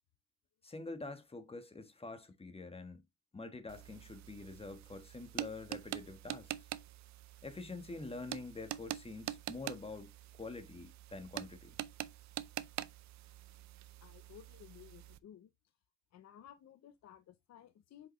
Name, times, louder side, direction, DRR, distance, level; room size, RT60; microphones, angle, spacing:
voice 1, 0.6-3.0 3.3-6.5 7.4-11.7, left 3 dB, 20° left, 1.4 m, -46 dB
sound 1, 3.7-15.2, right 13 dB, 65° right, 0.6 m, -45 dB
voice 2, 14.0-15.5 16.1-18.1, left 10 dB, 60° left, 0.8 m, -56 dB
5.7 x 5.3 x 3.1 m
cardioid pair, 90°, 30 cm